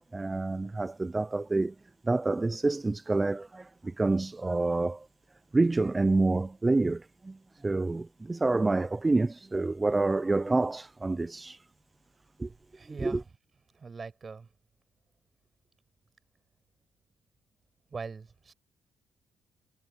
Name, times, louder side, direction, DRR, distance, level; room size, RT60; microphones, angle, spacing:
voice 1, 0.1-1.7 2.0-5.1 5.5-11.6 12.4-12.5 13.0-13.2, right 3 dB, 20° right, 0.4 m, -28 dB
voice 2, 12.7-13.2 13.7-14.5 17.9-18.5, right 4 dB, 35° right, 6.7 m, -41 dB
cardioid pair, 90°, 0 cm